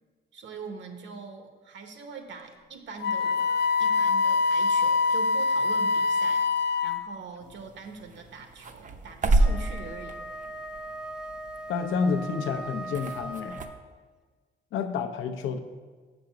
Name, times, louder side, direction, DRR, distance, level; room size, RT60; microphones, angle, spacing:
voice 1, 0.3-3.4 3.8-6.5 6.8-10.2, right 5 dB, 65° right, 5 dB, 1.2 m, -42 dB
Wind instrument woodwind instrument, 3.0-7.2, left 4 dB, 55° left, 0.4 m, -24 dB
sound 1, 7.4-13.7, right 2 dB, 40° right, 0.7 m, -31 dB
Wind instrument woodwind instrument 2, 9.4-14.0, right 1 dB, 5° right, 0.7 m, -39 dB
voice 2, 11.7-13.6 14.7-15.6, left 5 dB, 85° left, 6 dB, 0.7 m, -29 dB
6.6 x 5.2 x 5.9 m, 1.4 s
cardioid pair, 90°, 20 cm